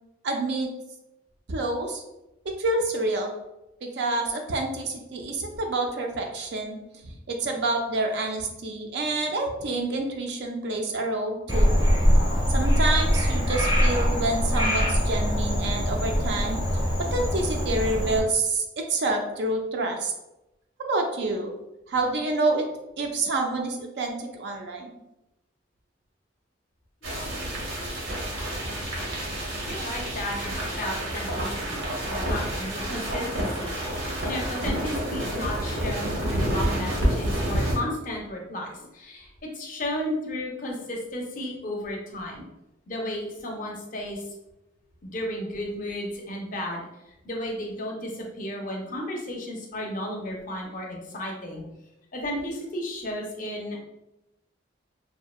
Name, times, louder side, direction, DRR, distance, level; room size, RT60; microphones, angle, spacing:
voice 1, 0.2-0.7 1.5-2.0 2.4-3.3 3.8-6.8 7.0-11.7 12.5-16.6 17.1-20.1 20.8-21.5 21.9-22.7 23.0-24.9, right 2 dB, 60° right, 3 dB, 0.4 m, -28 dB
Frog, 11.5-18.2, equal, 20° right, 0.6 m, -23 dB
voice 2, 27.0-27.4 29.6-42.4 42.9-44.2 45.0-46.9 47.2-51.6 52.1-53.8, left 1 dB, 40° left, 0 dB, 0.4 m, -34 dB
sound 1, 27.0-37.8, right 1 dB, 90° right, 0.9 m, -29 dB
2.6 x 2.1 x 2.3 m, 0.92 s
head